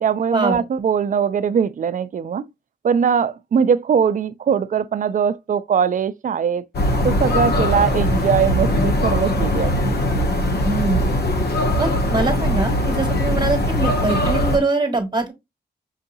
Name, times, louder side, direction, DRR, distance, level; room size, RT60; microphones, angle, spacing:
voice 1, 0.0-2.5 2.8-6.6 7.0-9.9 13.4-13.5, right 7 dB, 50° right, 0.4 m, -21 dB
sound 1, 6.7-14.6, left 1 dB, 70° left, 1.0 m, -20 dB
voice 2, 10.6-11.1 11.8-15.3, right 3 dB, 25° right, 1.3 m, -23 dB
5.6 x 2.7 x 2.6 m
cardioid pair, 95°, 18 cm